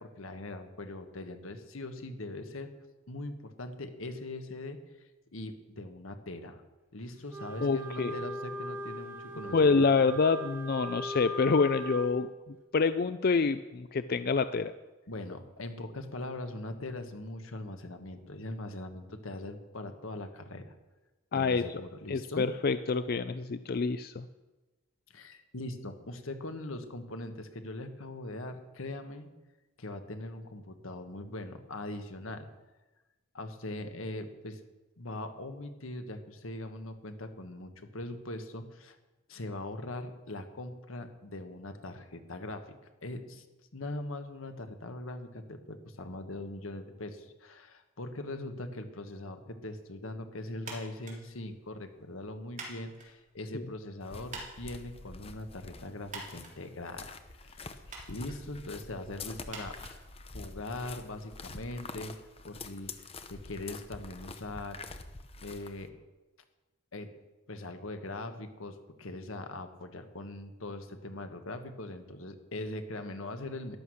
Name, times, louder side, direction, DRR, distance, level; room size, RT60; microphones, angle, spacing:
voice 1, 0.0-2.7 3.1-4.8 5.3-6.6 6.9-9.9 15.1-20.7 21.3-22.4 25.1-29.3 29.8-32.5 33.3-34.6 35.0-39.0 39.3-42.7 43.0-43.4 43.7-57.2 57.4-57.6 58.1-59.7 60.3-62.1 62.4-63.0 63.3-64.8 65.4-65.9 66.9-67.1 67.5-73.8, left 2 dB, 85° left, 7 dB, 1.4 m, -41 dB
Wind instrument woodwind instrument, 7.3-12.1, left 1 dB, 10° right, 2.5 m, -39 dB
voice 2, 7.6-8.1 9.5-14.7 21.3-21.8 22.1-24.2 53.5-53.6, left 4 dB, 50° left, 12 dB, 0.4 m, -27 dB
sound 1, 50.6-60.8, right 3 dB, 40° right, 3.6 m, -50 dB
sound 2, 54.0-65.9, left 3 dB, 30° left, 0.8 m, -46 dB
14.0 x 11.0 x 6.4 m, 1.1 s
head